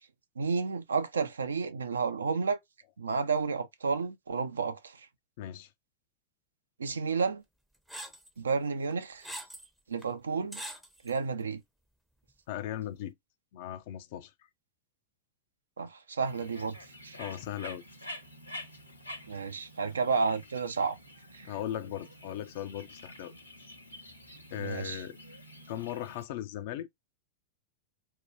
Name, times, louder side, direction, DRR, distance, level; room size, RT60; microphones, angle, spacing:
voice 1, 0.4-2.6 3.0-5.1 6.8-7.4 8.4-9.3 9.9-10.6 11.0-11.6 15.8-17.2 19.3-21.0 21.3-21.5 24.6-25.0, right 5 dB, 70° right, 0.4 m, -31 dB
voice 2, 5.4-5.7 12.5-13.1 13.5-14.3 17.2-17.8 21.4-23.3 24.5-25.2 25.7-26.9, left 11 dB, 50° left, 0.5 m, -38 dB
sound 1, 7.9-8.3 8.9-9.7 10.0-10.1 10.5-11.2, equal, ahead, 0.6 m, -42 dB
Bird, 16.2-26.2, left 1 dB, 85° left, 0.9 m, -48 dB
2.8 x 2.2 x 3.3 m
figure-of-eight pair, 90°, 0 cm